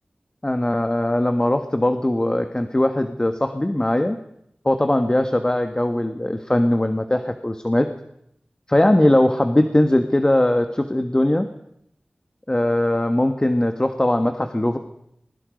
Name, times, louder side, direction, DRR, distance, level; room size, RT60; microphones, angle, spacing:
voice 1, 0.4-4.2 4.6-7.9 8.7-11.5 12.5-14.8, left 1 dB, 25° left, 7 dB, 1.4 m, -20 dB
25.5 x 21.5 x 5.3 m, 0.76 s
wide cardioid pair, 55°, 3 cm